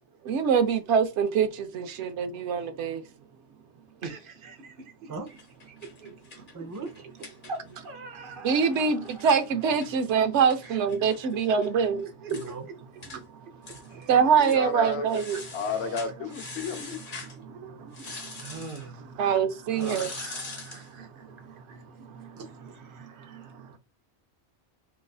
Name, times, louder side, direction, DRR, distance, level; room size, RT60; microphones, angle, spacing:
voice 1, 0.2-3.0 8.2-12.0 14.1-15.4 17.3-18.5 19.2-20.1 20.9-21.1 21.4-21.5 22.0-22.4 22.9-23.8, right 6 dB, 85° right, 0.9 m, -25 dB
voice 2, 4.0-5.4 5.7-6.2 7.5-7.6 7.8-9.4 10.6-10.8 11.2-11.3 12.0-12.5 13.9-14.2 18.4-19.4 19.7-22.3, right 3 dB, 60° right, 0.7 m, -43 dB
sound 1, 5.3-7.9 8.2-8.3 8.6-11.7 12.0-12.1 12.3-12.5 13.0-13.2 13.6-14.1 14.4-14.6 15.1-17.4 17.9-18.9 19.7-20.9, left 3 dB, 50° left, 1.1 m, -43 dB
voice 3, 6.5-6.9 12.3-12.7 22.4-23.5, right 3 dB, 20° right, 0.5 m, -41 dB
voice 4, 14.4-15.2 15.5-17.0, left 6 dB, 75° left, 0.9 m, -32 dB
4.0 x 2.5 x 2.3 m
omnidirectional pair, 1.1 m